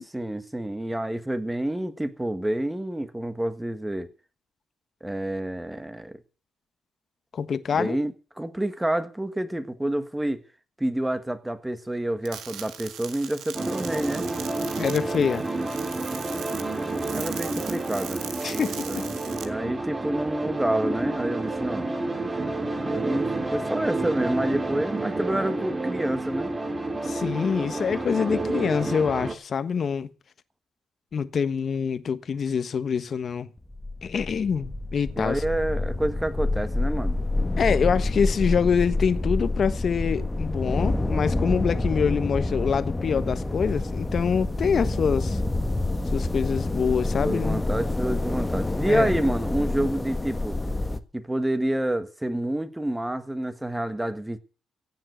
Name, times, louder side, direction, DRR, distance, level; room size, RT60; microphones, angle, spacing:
voice 1, 0.0-4.1 5.0-6.2 7.7-10.4 10.8-14.3 17.1-18.2 18.5-19.1 19.3-21.9 22.8-26.5 35.2-37.2 47.2-50.6 51.1-54.4, right 1 dB, 10° right, 1.6 m, -28 dB
voice 2, 7.3-8.0 14.8-15.4 18.4-19.0 27.0-30.1 31.1-33.5 34.0-35.4 37.6-45.4 46.1-47.6 48.9-49.1, left 6 dB, 50° left, 1.3 m, -25 dB
sound 1, 12.3-19.4, right 9 dB, 80° right, 1.9 m, -40 dB
sound 2, 13.5-29.3, right 2 dB, 25° right, 2.2 m, -30 dB
sound 3, 33.6-51.0, left 2 dB, 15° left, 1.4 m, -27 dB
16.0 x 7.6 x 8.0 m
cardioid pair, 90°, 0 cm